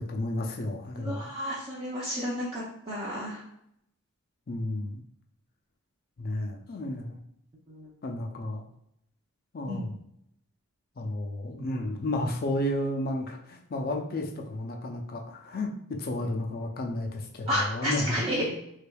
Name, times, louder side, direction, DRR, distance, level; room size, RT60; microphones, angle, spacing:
voice 1, 0.0-1.3 4.5-5.0 6.2-7.2 8.0-8.6 9.5-10.0 11.0-18.5, left 1 dB, 45° left, 3 dB, 0.5 m, -32 dB
voice 2, 0.9-3.4 7.7-7.9 9.7-9.8 17.5-18.5, equal, 25° right, -7 dB, 0.6 m, -31 dB
3.5 x 3.3 x 2.3 m, 0.77 s
head